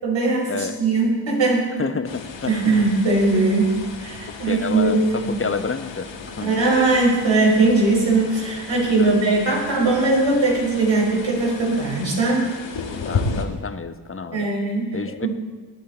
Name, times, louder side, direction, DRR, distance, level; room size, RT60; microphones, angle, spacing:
voice 1, 0.0-1.8 2.5-5.0 5.2-5.3 6.4-12.5 14.3-15.3, right 3 dB, 70° right, -2 dB, 4.5 m, -20 dB
voice 2, 1.8-2.9 4.3-6.1 6.4-6.6 9.0-9.1 12.9-14.5 14.9-15.3, left 5 dB, 30° left, 10 dB, 0.9 m, -29 dB
sound 1, 2.0-13.5, left 4 dB, 65° left, 1.6 m, -34 dB
19.0 x 8.7 x 4.2 m, 1.5 s
cardioid pair, 60°, 47 cm